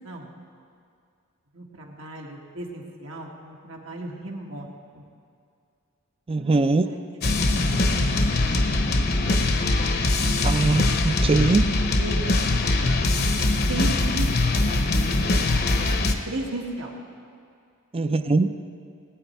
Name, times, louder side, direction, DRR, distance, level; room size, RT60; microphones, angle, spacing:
voice 1, 1.5-4.7 4.9-5.0 6.4-8.1 8.4-8.9 9.9-10.1 12.0-12.4 13.1-13.3 13.7-16.9, right 2 dB, 75° right, 0 dB, 1.8 m, -36 dB
voice 2, 6.3-6.9 10.4-11.7 17.9-18.5, right 3 dB, 25° right, 10 dB, 0.4 m, -21 dB
sound 1, 7.2-16.1, left 2 dB, 50° left, 0.9 m, -22 dB
19.0 x 9.2 x 4.6 m, 2.4 s
head